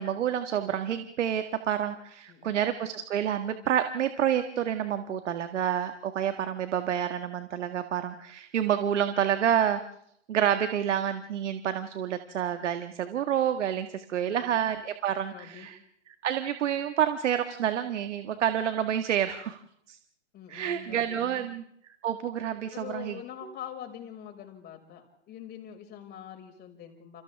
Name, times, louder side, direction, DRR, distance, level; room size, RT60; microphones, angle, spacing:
voice 1, 0.0-9.8 10.3-15.8 16.2-19.6 19.9-20.0 20.5-21.6 22.0-23.2, right 9 dB, 70° right, 8 dB, 1.9 m, -28 dB
voice 2, 14.2-14.6 15.2-15.7 20.3-21.5 22.7-27.2, left 10 dB, 25° left, 3 dB, 5.8 m, -44 dB
30.0 x 30.0 x 3.6 m, 0.71 s
hypercardioid pair, 135°, 37 cm